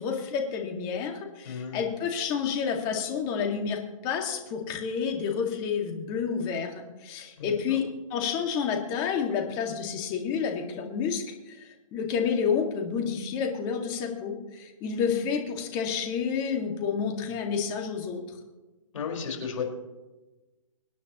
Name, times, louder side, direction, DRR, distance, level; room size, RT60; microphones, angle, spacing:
voice 1, 0.0-18.2, left 6 dB, 25° left, 2 dB, 2.1 m, -30 dB
voice 2, 1.4-1.8 7.4-7.6 18.9-19.6, left 6 dB, 60° left, 1 dB, 5.1 m, -33 dB
25.0 x 10.0 x 3.1 m, 1.1 s
hypercardioid pair, 155°, 18 cm